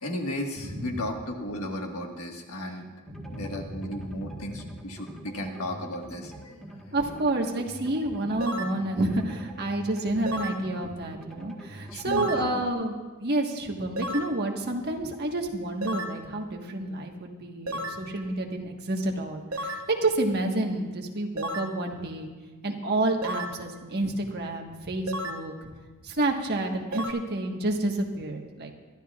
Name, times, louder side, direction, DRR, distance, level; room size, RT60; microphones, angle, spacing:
voice 1, 0.0-2.9 3.3-6.5 11.9-12.6, left 1 dB, 90° left, 2 dB, 1.6 m, -34 dB
voice 2, 0.6-1.0 3.1-4.8 6.9-22.3 22.6-25.7 26.0-28.7, right 2 dB, 50° right, 2 dB, 1.4 m, -29 dB
sound 1, 3.1-12.7, right 1 dB, ahead, 1.4 m, -45 dB
sound 2, 8.4-8.8 10.3-10.6 12.1-12.5 14.0-14.3 15.8-16.2 17.7-18.0 19.5-19.9 21.4-21.7 23.2-23.6 25.1-25.4 26.9-27.1, equal, 85° right, 1.0 m, -33 dB
22.5 x 12.5 x 2.4 m, 1.3 s
head